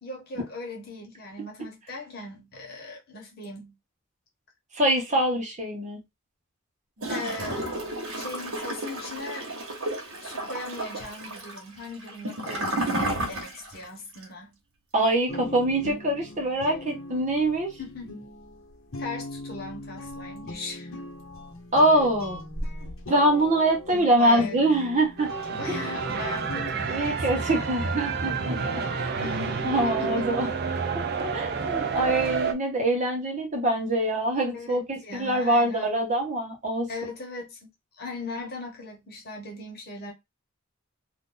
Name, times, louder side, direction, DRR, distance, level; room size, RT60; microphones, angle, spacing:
voice 1, 0.0-3.7 7.1-7.7 8.1-9.5 10.2-14.6 17.8-18.3 19.0-21.1 23.9-24.7 25.5-28.0 29.2-30.3 34.5-36.1 36.9-40.1, left 3 dB, 45° left, 1.2 m, -39 dB
voice 2, 4.7-6.0 14.9-17.7 21.7-22.4 23.1-25.3 25.7-25.8 26.9-29.2 29.6-30.5 31.2-36.9, right 1 dB, 35° right, 1.0 m, -24 dB
Gurgling / Toilet flush, 7.0-13.8 14.1-14.2, right 1 dB, 75° right, 1.2 m, -32 dB
sound 1, 15.3-26.7, left 1 dB, 70° left, 1.1 m, -39 dB
sound 2, 25.2-32.5, right 5 dB, 50° right, 0.5 m, -29 dB
2.6 x 2.6 x 3.8 m
head